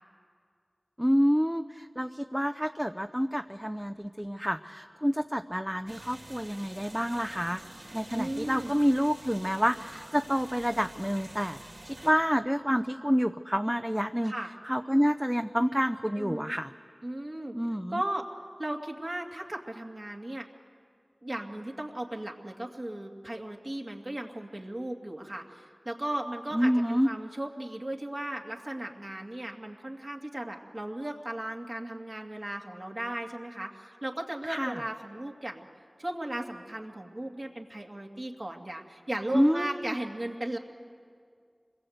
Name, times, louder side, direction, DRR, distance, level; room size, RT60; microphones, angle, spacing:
voice 1, 1.0-7.6 7.9-14.3 14.7-16.7 17.5-18.0 26.5-27.1 34.5-34.8 39.3-39.9, equal, 5° right, 7 dB, 0.6 m, -28 dB
sound 1, 5.9-12.1, right 1 dB, 75° right, 3.9 m, -48 dB
voice 2, 8.1-8.7 14.2-14.5 16.2-16.5 17.0-17.6 17.9-18.3 18.6-20.5 21.2-35.7 36.0-40.6, right 1 dB, 45° right, 1 dB, 2.2 m, -36 dB
26.5 x 21.0 x 8.0 m, 2.1 s
wide cardioid pair, 45°, 0 cm